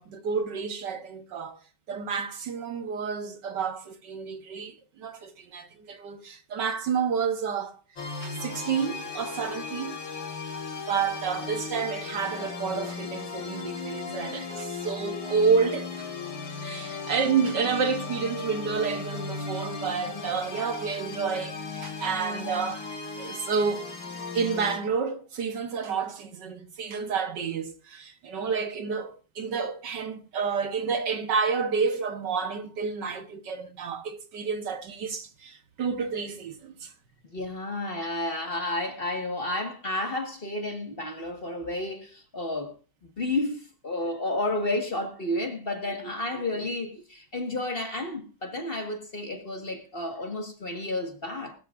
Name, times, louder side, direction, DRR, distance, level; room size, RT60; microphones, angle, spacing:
voice 1, 0.0-1.6 1.9-7.8 8.2-10.0 10.9-16.1 16.6-22.8 23.2-23.9 24.4-36.9 46.0-46.1, right 5 dB, 65° right, 1.7 m, -30 dB
sound 1, 8.0-24.8, left 4 dB, 90° left, 3.1 m, -36 dB
voice 2, 37.3-42.7 43.2-51.5, left 2 dB, 30° left, 1.7 m, -31 dB
20.0 x 13.0 x 2.5 m
omnidirectional pair, 2.1 m